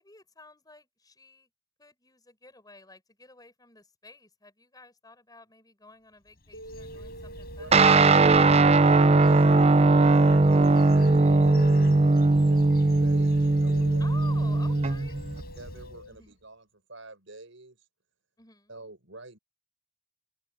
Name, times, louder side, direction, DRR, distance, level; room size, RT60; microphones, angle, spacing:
voice 1, 0.0-1.5 1.8-8.5 14.0-15.2 16.1-16.4 18.4-18.8, left 3 dB, 20° left, 6.1 m, -51 dB
Bird, 6.3-16.3, left 1 dB, 50° left, 4.5 m, -45 dB
sound 1, 6.5-16.1, right 1 dB, 80° left, 2.3 m, -46 dB
Guitar, 7.7-15.4, right 3 dB, 30° right, 0.6 m, -19 dB
voice 2, 8.6-11.9 12.4-14.1 14.8-14.9 15.6-17.9 18.7-19.4, right 2 dB, 70° right, 7.3 m, -47 dB
open air
head